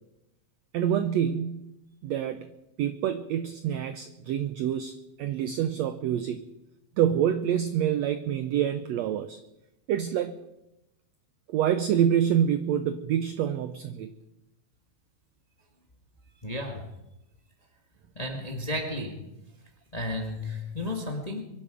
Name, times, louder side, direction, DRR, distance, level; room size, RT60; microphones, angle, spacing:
voice 1, 0.7-1.7 2.0-2.5 2.8-6.4 7.0-9.4 9.9-10.3 11.5-14.1, right 9 dB, 80° right, 11 dB, 1.5 m, -27 dB
voice 2, 16.4-16.8 18.1-19.3 19.9-21.4, left 1 dB, 20° left, 2 dB, 1.2 m, -33 dB
23.0 x 11.5 x 5.1 m, 0.91 s
omnidirectional pair, 3.8 m